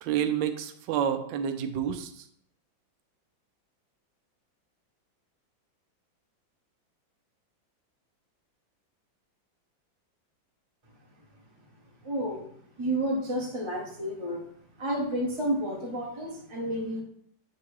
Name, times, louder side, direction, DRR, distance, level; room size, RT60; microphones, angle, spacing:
voice 1, 0.0-2.3, right 9 dB, 75° right, 8 dB, 1.2 m, -29 dB
voice 2, 12.0-12.4 12.8-14.4 14.8-17.0, right 1 dB, 25° right, -2 dB, 0.6 m, -30 dB
7.3 x 2.9 x 4.7 m, 0.67 s
omnidirectional pair, 2.1 m